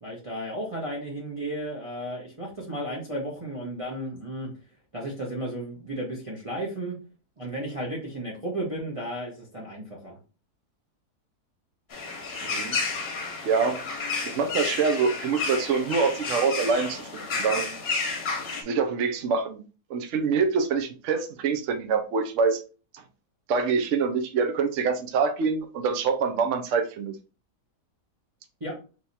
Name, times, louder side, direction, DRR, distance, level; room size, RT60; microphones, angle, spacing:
voice 1, 0.0-4.5 4.9-6.9 7.4-10.2 28.6-28.8, right 1 dB, 25° right, 1.1 m, -34 dB
sound 1, 11.9-18.6, left 4 dB, 45° left, 1.0 m, -31 dB
voice 2, 12.4-12.8 13.4-13.8 14.2-17.7 18.6-19.6 19.9-22.6 23.5-27.2, right 5 dB, 60° right, 0.9 m, -25 dB
3.5 x 3.0 x 4.1 m
omnidirectional pair, 1.7 m